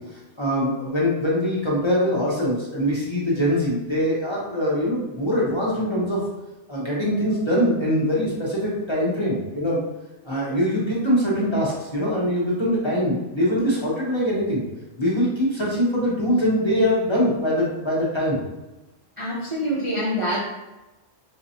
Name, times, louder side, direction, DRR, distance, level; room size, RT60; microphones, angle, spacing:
voice 1, 0.4-6.2 6.7-9.8 10.3-14.6 15.0-18.4, equal, 25° left, -7 dB, 0.8 m, -23 dB
voice 2, 19.2-20.4, equal, 30° right, -7 dB, 0.6 m, -25 dB
4.0 x 3.0 x 2.7 m, 1.0 s
omnidirectional pair, 1.3 m